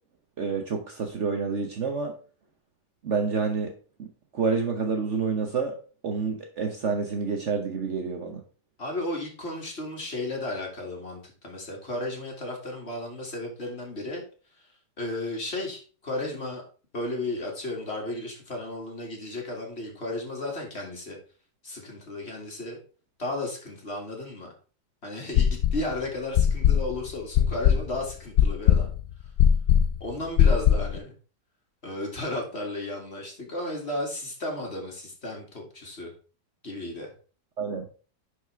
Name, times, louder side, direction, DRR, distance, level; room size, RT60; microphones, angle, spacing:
voice 1, 0.4-2.1 3.0-3.7 4.0-5.8 6.0-8.4 37.6-37.9, right 5 dB, 50° right, 4 dB, 1.1 m, -28 dB
voice 2, 8.8-14.2 15.0-16.6 16.9-21.2 21.6-22.8 23.2-24.5 25.0-28.9 30.0-31.1 31.8-36.1 36.6-37.1, left 2 dB, 40° left, 0 dB, 2.4 m, -34 dB
sound 1, 25.3-25.9 26.3-31.0, left 9 dB, 75° left, 0.7 m, -20 dB
11.5 x 5.0 x 3.4 m, 0.38 s
omnidirectional pair, 1.8 m